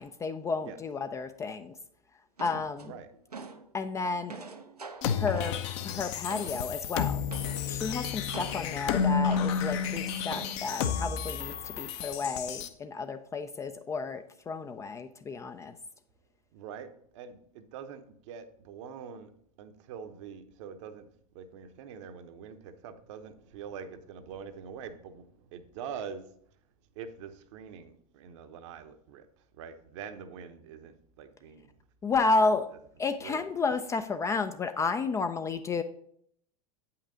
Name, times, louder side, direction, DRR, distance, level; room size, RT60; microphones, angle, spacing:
voice 1, 0.0-1.7 2.4-2.9 3.7-4.4 5.1-5.6 5.8-7.2 7.7-15.7 32.0-32.7 33.0-35.8, left 4 dB, 15° left, 9 dB, 0.3 m, -31 dB
sound 1, 2.4-3.7 4.1-6.8 7.3-7.7 8.3-9.9 10.3-11.0, right 4 dB, 90° right, 0.7 m, -44 dB
sound 2, 5.0-12.7, left 7 dB, 50° left, 0.7 m, -31 dB
voice 2, 16.5-19.3 19.6-21.1 21.3-26.3 26.9-29.3 29.5-31.8 32.4-32.5 33.2-33.5, right 7 dB, 50° right, 9 dB, 0.8 m, -44 dB
8.6 x 5.7 x 3.8 m, 0.66 s
figure-of-eight pair, 85°, 19 cm